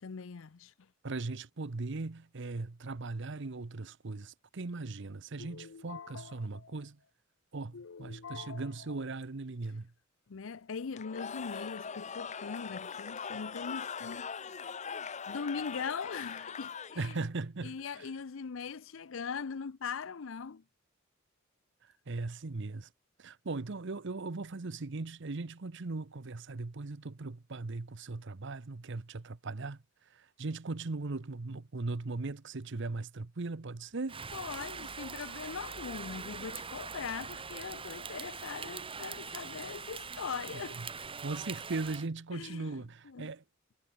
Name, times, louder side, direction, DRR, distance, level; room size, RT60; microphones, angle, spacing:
voice 1, 0.0-0.7 5.4-6.7 7.7-8.7 10.3-14.3 15.3-17.1 17.6-20.6 34.3-40.8 42.3-42.8 43.0-43.3, left 5 dB, 75° left, 0.6 m, -41 dB
voice 2, 1.0-7.0 7.5-9.9 17.0-18.1 22.1-22.9 23.2-29.8 30.1-34.2 40.5-40.9 41.2-43.4, right 3 dB, 65° right, 0.9 m, -39 dB
Cheering / Crowd, 10.9-17.3, left 6 dB, 35° left, 0.8 m, -41 dB
Rain, 34.1-42.1, right 5 dB, 25° right, 1.6 m, -42 dB
head